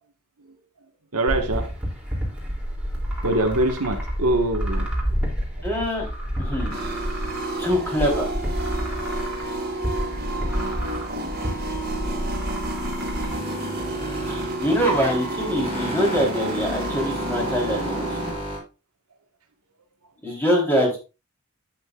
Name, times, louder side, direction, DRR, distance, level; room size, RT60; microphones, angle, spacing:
voice 1, 1.1-1.7 3.2-4.9, right 1 dB, 85° right, 4 dB, 1.5 m, -23 dB
sound 1, 1.3-13.3, equal, 5° right, 2.9 m, -29 dB
voice 2, 5.6-6.1 6.4-6.8 7.6-8.3 14.3-18.2 20.2-21.0, equal, 10° left, -2 dB, 3.8 m, -24 dB
sound 2, 6.7-18.3, right 2 dB, 45° right, 2.1 m, -30 dB
sound 3, 11.6-18.6, equal, 25° left, 4.8 m, -35 dB
11.5 x 8.8 x 2.5 m, 0.30 s
head